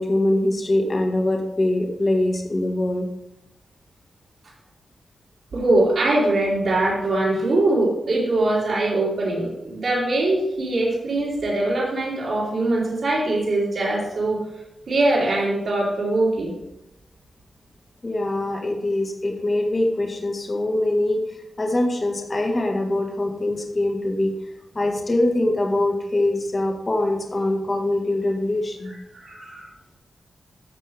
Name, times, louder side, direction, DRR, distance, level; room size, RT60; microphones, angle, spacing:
voice 1, 0.0-3.1 18.0-21.2 21.6-24.3 24.7-28.9, left 1 dB, 25° left, 1 dB, 1.7 m, -23 dB
voice 2, 5.5-14.4 14.9-16.5 29.1-29.7, right 2 dB, 65° right, -9 dB, 3.6 m, -22 dB
13.0 x 7.4 x 3.5 m, 0.89 s
wide cardioid pair, 140°, 0 cm